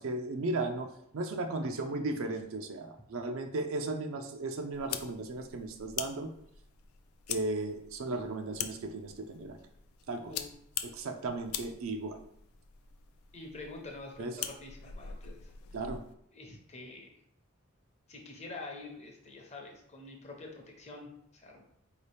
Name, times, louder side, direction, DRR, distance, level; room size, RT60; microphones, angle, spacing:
voice 1, 0.0-6.3 7.3-9.6 10.1-10.3 10.8-12.2 14.2-14.4 15.7-16.0, right 2 dB, 65° right, 6 dB, 0.4 m, -35 dB
sound 1, 4.7-16.1, left 9 dB, 75° left, 0.4 m, -43 dB
voice 2, 13.3-15.5 16.3-17.1 18.1-21.6, left 2 dB, 30° left, 1 dB, 0.7 m, -46 dB
4.5 x 2.8 x 3.3 m, 0.72 s
head